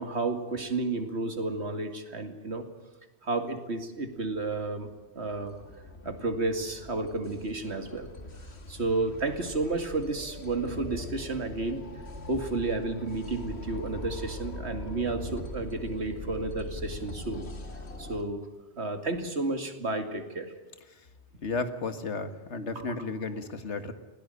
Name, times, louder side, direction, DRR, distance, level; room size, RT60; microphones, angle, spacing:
voice 1, 0.0-2.7 3.2-4.9 5.1-5.6 6.0-8.1 8.7-11.8 12.3-17.5 18.0-18.5 18.8-20.5 22.8-22.9, right 3 dB, 70° right, 7 dB, 2.6 m, -31 dB
sound 1, 4.3-18.2, left 1 dB, 65° left, 2.2 m, -42 dB
voice 2, 21.4-23.9, left 3 dB, 85° left, 9 dB, 2.0 m, -33 dB
20.0 x 17.0 x 9.9 m, 1.2 s
omnidirectional pair, 1.1 m